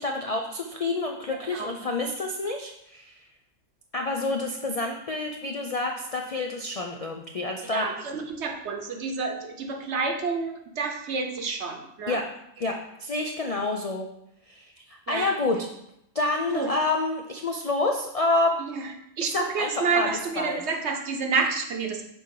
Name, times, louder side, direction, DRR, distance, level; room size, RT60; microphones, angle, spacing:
voice 1, 0.0-3.3 3.9-7.9 12.1-12.2 12.6-14.1 14.5-15.7 16.1-18.5 19.2-20.1 20.4-20.6, left 2 dB, 70° left, 3 dB, 0.3 m, -28 dB
voice 2, 1.3-1.7 7.7-12.2 15.1-15.3 16.5-16.7 18.6-22.0, right 4 dB, 60° right, 4 dB, 1.0 m, -29 dB
6.3 x 4.1 x 4.7 m, 0.78 s
omnidirectional pair, 1.4 m